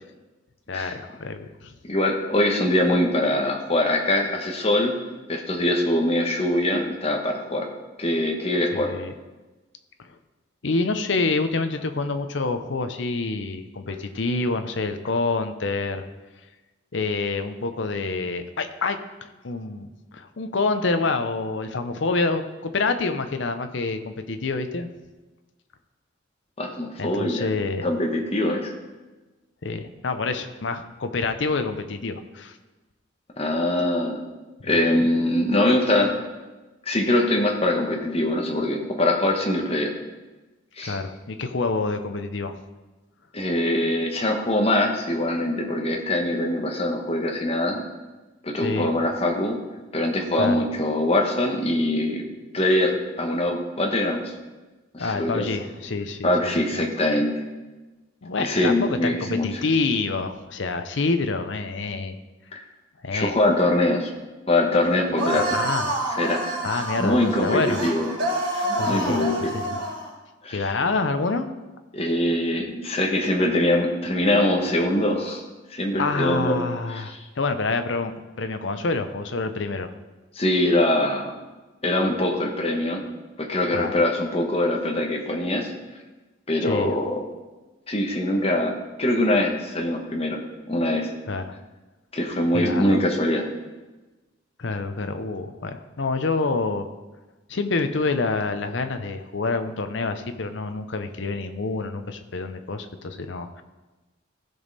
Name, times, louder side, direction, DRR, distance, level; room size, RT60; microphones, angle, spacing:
voice 1, 0.7-1.7 8.7-9.1 10.0-10.1 10.6-16.1 16.9-24.9 27.0-27.9 29.6-32.6 34.7-34.8 40.9-42.5 48.6-48.9 50.4-50.6 55.0-56.8 58.2-62.2 63.0-63.4 65.3-65.9 66.6-67.8 68.8-69.7 70.5-71.5 76.0-79.9 83.7-84.0 86.6-86.9 91.3-91.5 92.5-93.0 94.6-96.9 97.5-103.6, left 3 dB, 70° left, 8 dB, 0.7 m, -27 dB
voice 2, 1.8-4.9 5.3-7.7 8.0-8.9 26.6-27.5 27.8-28.7 33.4-34.2 34.6-36.1 36.9-39.9 40.8-41.0 43.3-47.8 48.4-49.6 49.9-52.2 52.5-54.3 54.9-55.5 56.2-57.3 58.4-59.6 62.5-62.6 63.1-64.1 64.5-65.6 66.1-68.1 68.5-69.5 70.4-70.7 71.9-75.4 75.7-76.6 76.9-77.2 80.4-81.3 81.8-83.0 83.4-85.7 86.5-87.2 87.9-88.7 89.0-90.4 90.7-91.1 92.1-93.5, left 1 dB, 30° left, 2 dB, 1.2 m, -23 dB
sound 1, 65.2-70.1, right 1 dB, 75° right, 3.4 m, -28 dB
15.5 x 5.3 x 4.1 m, 1.2 s
head